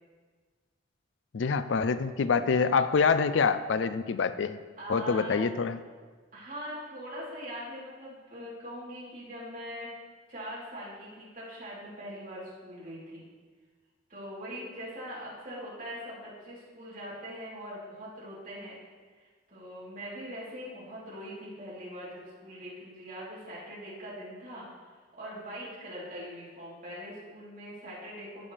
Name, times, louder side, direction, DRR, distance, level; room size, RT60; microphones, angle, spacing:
voice 1, 1.3-4.6 4.9-5.8, left 5 dB, 75° left, 12 dB, 0.4 m, -26 dB
voice 2, 4.8-5.5 6.3-9.9 10.3-13.2 14.1-18.8 19.2-24.7 25.0-28.5, equal, 40° right, -8 dB, 3.6 m, -42 dB
15.5 x 7.2 x 3.4 m, 1.5 s
head